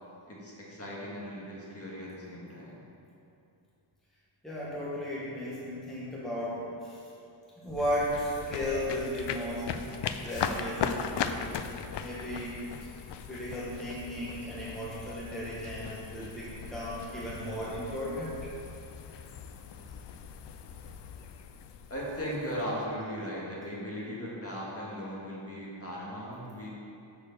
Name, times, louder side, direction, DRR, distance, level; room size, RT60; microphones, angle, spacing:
voice 1, 0.3-2.8 21.9-26.7, equal, 30° left, -5 dB, 1.8 m, -38 dB
voice 2, 4.4-7.0 7.6-12.9 13.3-18.5, equal, ahead, -8 dB, 1.5 m, -35 dB
sound 1, 7.7-22.8, left 7 dB, 60° left, 0.5 m, -39 dB
6.6 x 6.3 x 6.8 m, 2.7 s
wide cardioid pair, 160°, 49 cm